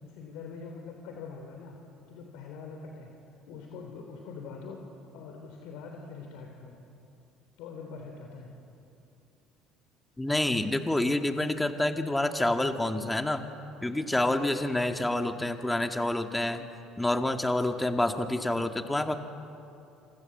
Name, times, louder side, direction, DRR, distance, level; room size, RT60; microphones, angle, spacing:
voice 1, 0.0-1.8 2.1-3.1 3.5-4.9 5.1-6.7 7.6-8.5, left 5 dB, 70° left, 2 dB, 3.4 m, -43 dB
voice 2, 10.2-13.4 13.8-16.7 17.0-19.2, left 1 dB, 10° left, 6 dB, 2.1 m, -28 dB
27.5 x 27.0 x 7.9 m, 2.8 s
hypercardioid pair, 70°, 0 cm